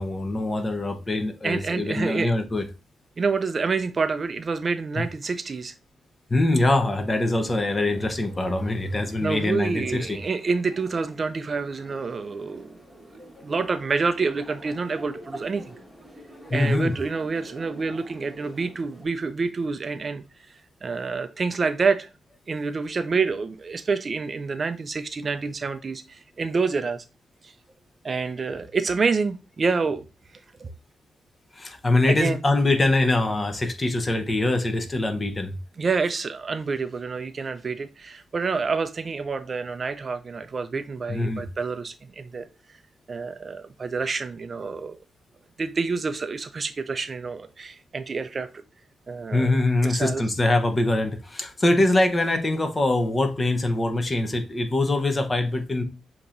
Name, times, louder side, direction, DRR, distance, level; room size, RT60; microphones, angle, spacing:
voice 1, 0.0-2.6 5.0-5.1 6.3-10.2 16.5-16.9 31.6-35.5 41.1-41.5 49.3-55.8, left 2 dB, 25° left, 0.9 m, -23 dB
voice 2, 1.4-2.3 3.2-5.7 9.2-12.8 13.4-15.7 16.5-20.2 20.8-22.1 22.5-27.0 27.4-27.5 28.0-30.1 30.6-30.7 32.1-32.4 35.8-42.5 43.1-45.0 45.6-48.5 49.1-49.5 49.8-50.2, right 4 dB, 40° right, 0.4 m, -27 dB
sound 1, 7.4-19.1, equal, 5° left, 1.6 m, -47 dB
6.9 x 2.9 x 2.5 m
cardioid pair, 100°, 0 cm